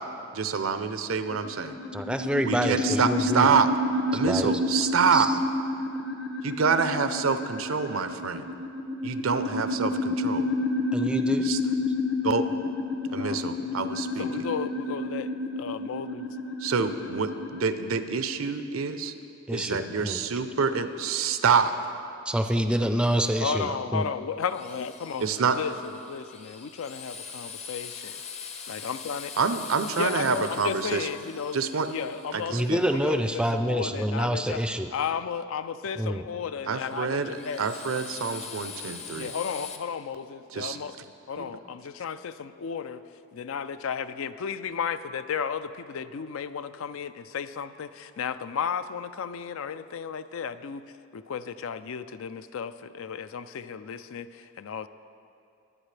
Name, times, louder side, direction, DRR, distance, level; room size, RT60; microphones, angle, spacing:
voice 1, 0.3-1.8 2.4-3.7 4.1-5.3 6.4-8.5 9.0-10.5 11.4-11.6 12.2-12.5 13.1-14.3 16.6-19.1 19.5-21.7 25.2-25.6 29.4-31.1 31.5-31.9 32.3-32.8 36.7-39.3 40.5-40.8 41.4-41.5, right 5 dB, 80° right, 10 dB, 0.6 m, -27 dB
sound 1, 1.3-17.6, left 2 dB, 55° left, 0.8 m, -30 dB
voice 2, 1.9-3.6 4.2-5.4 10.9-11.5 19.5-20.2 22.3-24.0 32.5-34.9 36.0-36.3, right 1 dB, 5° right, 7 dB, 0.4 m, -27 dB
voice 3, 13.1-13.8 14.2-16.4 23.4-25.3 25.5-28.2 28.7-29.3 30.0-31.6 31.9-34.6 34.9-37.8 39.2-41.0 41.3-43.0 43.3-50.8 51.1-54.9, left 6 dB, 75° left, 12 dB, 0.4 m, -34 dB
Drill, 24.4-33.4 36.8-39.8, left 6 dB, 30° left, 0.7 m, -43 dB
22.0 x 8.8 x 3.3 m, 2.6 s
head